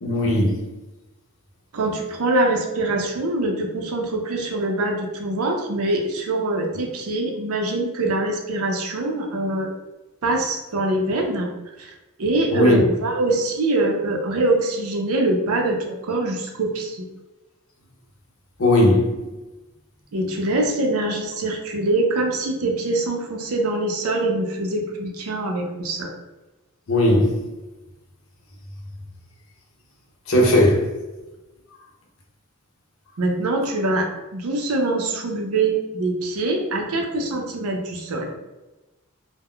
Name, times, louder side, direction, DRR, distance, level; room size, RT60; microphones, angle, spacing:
voice 1, 0.0-0.6 12.5-12.8 18.6-19.1 26.9-27.4 30.3-30.9, left 1 dB, 70° left, 0.6 m, -17 dB
voice 2, 1.7-9.7 10.2-11.5 11.8-11.9 12.2-17.1 20.1-26.1 33.2-38.4, right 2 dB, 85° right, 0.5 m, -24 dB
2.2 x 2.1 x 3.5 m
head